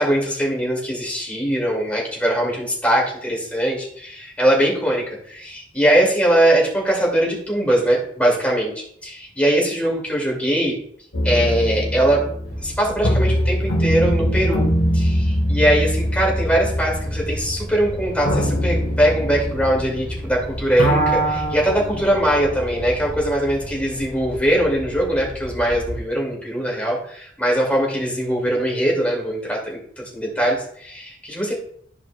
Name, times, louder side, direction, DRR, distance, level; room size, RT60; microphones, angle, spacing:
voice 1, 0.0-10.8 11.2-12.2 12.6-14.7 14.9-31.5, right 1 dB, 5° left, -3 dB, 2.4 m, -21 dB
sound 1, 11.1-20.4 20.6-22.2, equal, 80° left, 1.4 m, -22 dB
sound 2, 12.4-26.0, equal, 55° right, 1.5 m, -34 dB
13.5 x 4.9 x 2.3 m, 0.63 s
head